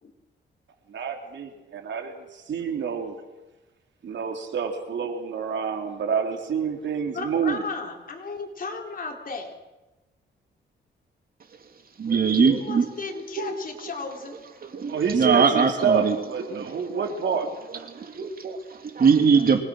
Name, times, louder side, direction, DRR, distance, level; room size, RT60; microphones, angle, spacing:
voice 1, 0.9-3.2 4.0-7.6 14.9-17.5 17.7-17.9, right 6 dB, 70° right, 3.7 m, -28 dB
voice 2, 7.1-9.5 12.3-14.4, left 4 dB, 45° left, 4.2 m, -34 dB
voice 3, 12.0-12.9 13.4-13.5 14.6-16.1 16.5-16.8 17.9-19.6, right 5 dB, 50° right, 3.0 m, -22 dB
25.0 x 21.0 x 6.5 m
cardioid pair, 110°, 20 cm